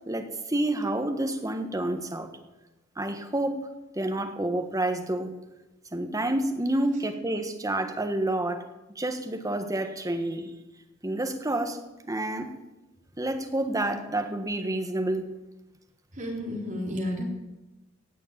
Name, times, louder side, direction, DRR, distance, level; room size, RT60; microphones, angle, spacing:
voice 1, 0.0-2.3 3.0-3.6 3.9-5.3 5.9-8.6 8.9-10.5 11.0-11.8 12.1-12.5 13.2-15.3, right 1 dB, 15° right, 6 dB, 1.4 m, -29 dB
voice 2, 16.1-17.2, left 1 dB, 40° right, -1 dB, 3.8 m, -31 dB
16.5 x 6.5 x 9.0 m, 1.0 s
head